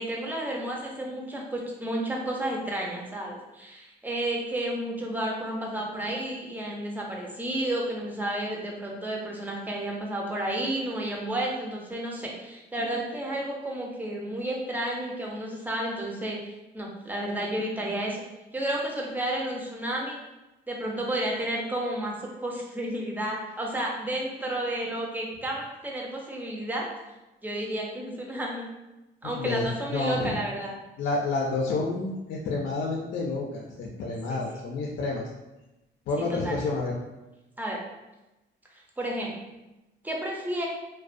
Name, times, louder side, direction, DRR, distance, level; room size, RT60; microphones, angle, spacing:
voice 1, 0.0-16.4 16.7-18.2 18.5-20.2 20.7-26.9 27.4-28.7 29.2-30.8 34.3-34.4 36.2-36.6 37.6-37.9 39.0-39.3 40.0-40.7, right 1 dB, 10° right, -2 dB, 0.5 m, -31 dB
voice 2, 29.3-30.4 31.0-35.2 36.1-36.9, left 3 dB, 65° left, -2 dB, 0.4 m, -29 dB
2.3 x 2.1 x 2.4 m, 1.0 s
cardioid pair, 90°, 20 cm